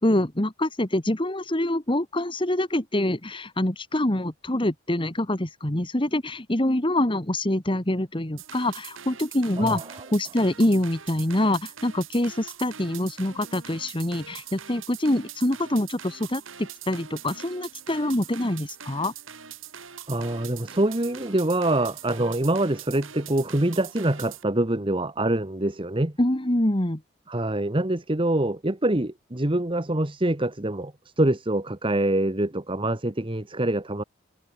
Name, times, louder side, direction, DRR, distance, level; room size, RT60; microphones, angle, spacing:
voice 1, 0.0-9.8 10.1-19.1 26.2-27.0, left 1 dB, 25° left, 1.7 m, -25 dB
sound 1, 8.4-24.4, right 9 dB, 70° right, 3.0 m, -43 dB
voice 2, 9.6-10.0 20.1-26.2 27.3-34.0, right 1 dB, 25° right, 1.3 m, -25 dB
head